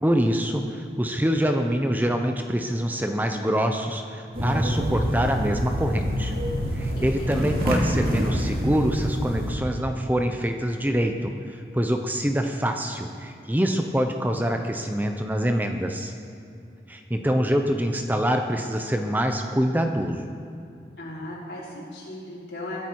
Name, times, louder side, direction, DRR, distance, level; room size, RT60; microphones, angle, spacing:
voice 1, 0.0-6.3 6.7-16.1 16.9-20.3, equal, 10° right, 5 dB, 0.7 m, -25 dB
sound 1, 4.3-9.5, equal, 55° right, 2.7 m, -26 dB
voice 2, 6.9-7.6 21.0-22.9, left 1 dB, 80° left, -6 dB, 4.7 m, -37 dB
22.0 x 10.0 x 4.7 m, 2.5 s
head